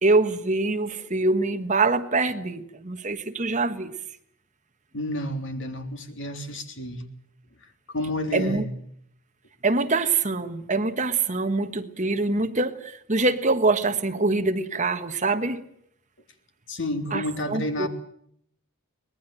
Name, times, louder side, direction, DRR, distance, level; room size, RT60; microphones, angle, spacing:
voice 1, 0.0-3.9 8.3-8.6 9.6-15.6 17.1-17.9, right 3 dB, 35° right, 1.4 m, -24 dB
voice 2, 4.9-7.0 7.6-8.7 16.7-17.9, left 1 dB, 55° left, 3.3 m, -30 dB
25.0 x 20.0 x 7.6 m
head